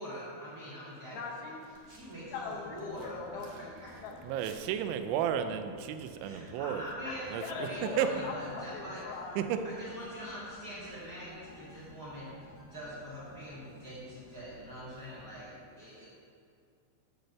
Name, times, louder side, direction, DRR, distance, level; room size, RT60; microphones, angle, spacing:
voice 1, 0.0-1.2 1.5-1.6 1.9-4.0 6.2-9.0 9.6-12.3 12.6-16.0, equal, 40° right, -10 dB, 1.5 m, -44 dB
voice 2, 1.1-1.5 2.3-3.7 4.0-4.2 7.1-7.2 7.4-9.5, left 4 dB, 85° left, -1 dB, 3.5 m, -40 dB
sound 1, 1.6-6.6, right 3 dB, 70° right, 2.1 m, -61 dB
sound 2, 1.9-15.5, left 1 dB, 65° left, 2.2 m, -57 dB
voice 3, 4.2-6.9 7.3-8.1 9.4-9.6, right 9 dB, 90° right, 9 dB, 3.0 m, -33 dB
sound 3, 6.7-13.6, equal, 45° left, 2.1 m, -60 dB
10.5 x 4.0 x 6.6 m, 2.5 s
omnidirectional pair, 5.4 m